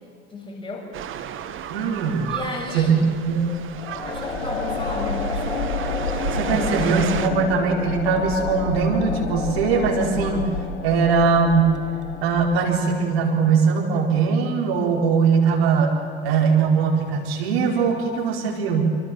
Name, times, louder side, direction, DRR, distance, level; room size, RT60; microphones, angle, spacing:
voice 1, 0.3-0.9 2.3-3.0 4.0-5.6, left 2 dB, 15° left, -1 dB, 7.7 m, -33 dB
sound 1, 0.9-7.3, right 10 dB, 35° right, 1.8 m, -34 dB
voice 2, 1.7-2.3 2.7-3.4 6.3-10.5 10.8-11.8 12.2-19.0, right 5 dB, 65° right, 0 dB, 4.8 m, -21 dB
sound 2, 3.6-12.9, left 4 dB, 80° left, 1.3 m, -29 dB
26.0 x 25.5 x 7.7 m, 2.2 s
figure-of-eight pair, 70°, 33 cm